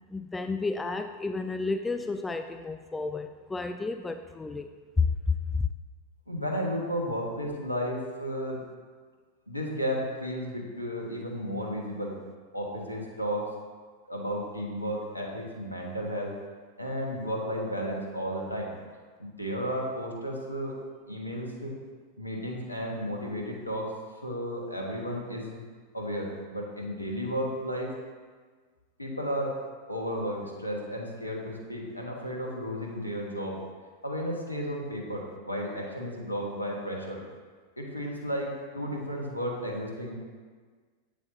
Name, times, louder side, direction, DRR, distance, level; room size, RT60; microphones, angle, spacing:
voice 1, 0.0-4.7 5.0-5.6, left 4 dB, 10° left, 8 dB, 0.3 m, -31 dB
voice 2, 6.3-8.6 9.5-12.2 12.5-13.5 14.1-16.3 16.8-18.7 19.2-21.8 22.2-23.9 24.2-25.6 25.9-27.9 29.0-29.6 29.9-33.6 34.0-37.2 37.8-40.2, equal, 85° left, -1 dB, 1.4 m, -33 dB
8.5 x 8.1 x 2.9 m, 1.5 s
figure-of-eight pair, 90°, 0 cm